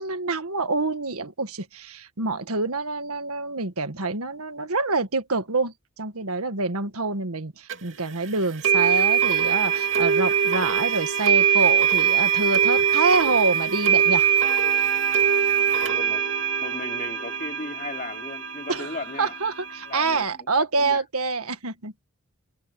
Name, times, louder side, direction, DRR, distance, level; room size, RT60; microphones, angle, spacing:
voice 1, 0.0-14.3 18.7-18.9 19.2-22.0, right 3 dB, 80° right, 1.6 m, -26 dB
sound 1, 7.7-7.8 8.6-20.2, right 8 dB, 55° right, 3.2 m, -22 dB
voice 2, 15.4-19.4 19.9-21.0, left 2 dB, 35° left, 3.6 m, -37 dB
head